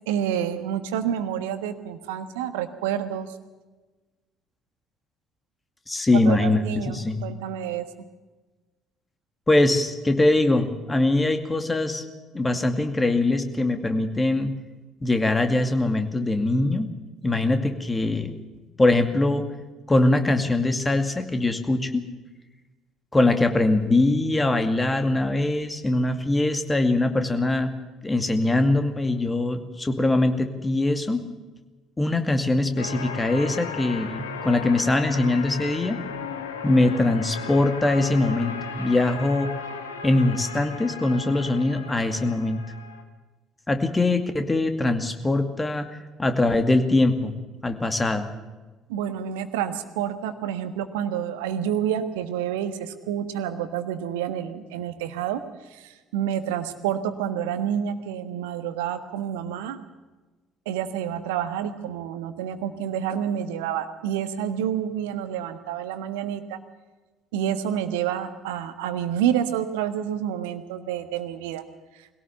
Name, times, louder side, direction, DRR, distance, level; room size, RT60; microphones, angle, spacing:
voice 1, 0.1-3.3 6.3-7.8 48.9-55.4 55.7-59.8 60.6-66.6 67.3-71.6, right 9 dB, 70° right, 11 dB, 1.4 m, -28 dB
voice 2, 5.9-7.2 9.5-12.0 12.3-14.5 15.0-16.9 17.2-18.3 18.8-19.5 19.9-22.0 23.1-27.7 28.0-31.3 32.0-36.0 36.6-39.5 40.0-42.6 43.7-45.9 46.2-47.3 47.6-48.3, left 2 dB, 15° left, 7 dB, 2.4 m, -22 dB
sound 1, 32.8-43.0, left 6 dB, 75° left, 1.7 m, -36 dB
22.0 x 17.5 x 7.0 m, 1.2 s
figure-of-eight pair, 55°, 0 cm